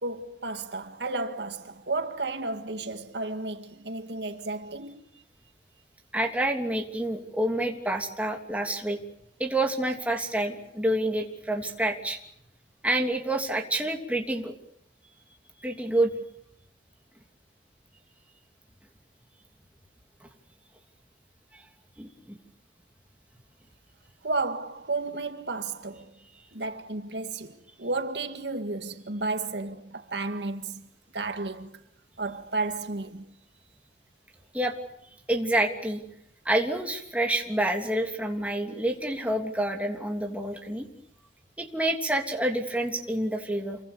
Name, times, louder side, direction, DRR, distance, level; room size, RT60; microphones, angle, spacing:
voice 1, 0.0-5.1 24.2-26.2 26.5-30.9 31.1-31.8 32.2-33.3, right 3 dB, 80° right, 2.0 m, -33 dB
voice 2, 6.1-9.0 9.4-12.2 12.8-14.5 15.6-16.1 22.0-22.4 34.5-34.7 35.3-36.0 36.4-40.9 41.6-43.8, right 1 dB, 10° right, 3.0 m, -28 dB
28.5 x 23.5 x 6.9 m
head